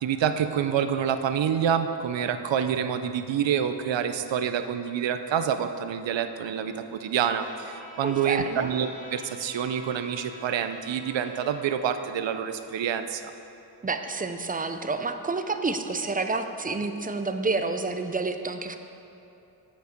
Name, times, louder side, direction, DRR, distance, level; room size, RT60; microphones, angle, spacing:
voice 1, 0.0-13.3, right 8 dB, 85° right, 9 dB, 0.6 m, -27 dB
Trumpet, 7.4-11.7, left 2 dB, 20° left, 1.2 m, -46 dB
voice 2, 8.0-8.7 13.8-18.8, right 3 dB, 20° right, 7 dB, 0.4 m, -29 dB
8.8 x 5.4 x 5.1 m, 2.9 s
wide cardioid pair, 90°, 43 cm